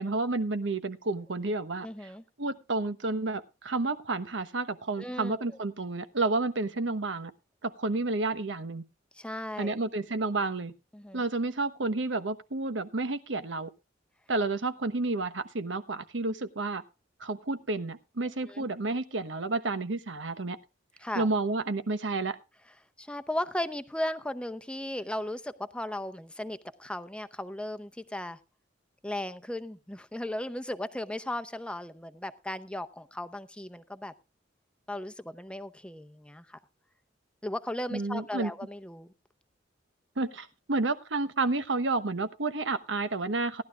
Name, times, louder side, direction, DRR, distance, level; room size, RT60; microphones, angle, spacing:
voice 1, 0.0-2.1 2.4-7.3 7.6-8.8 9.6-10.7 11.1-13.7 14.3-16.8 17.2-20.6 21.1-22.4 37.9-38.5 40.2-43.6, right 3 dB, 85° right, 11 dB, 1.1 m, -30 dB
voice 2, 1.8-2.2 5.0-5.6 9.1-9.8 10.9-11.2 18.4-18.7 21.0-21.3 23.0-28.4 29.0-34.1 34.9-36.6 37.4-39.1, left 1 dB, 5° left, 11 dB, 0.7 m, -36 dB
18.0 x 11.5 x 2.4 m, 0.28 s
head